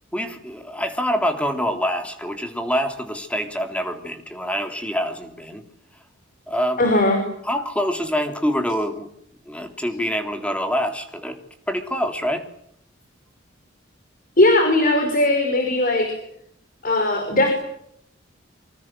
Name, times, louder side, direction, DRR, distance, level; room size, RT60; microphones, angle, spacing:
voice 1, 0.1-5.6 6.5-6.8 7.4-9.1 9.5-11.4 11.7-12.5, equal, 5° left, 5 dB, 3.3 m, -25 dB
voice 2, 6.8-7.2 14.4-16.1 16.8-17.5, left 1 dB, 50° left, 4 dB, 5.7 m, -18 dB
27.5 x 25.5 x 7.6 m, 0.73 s
head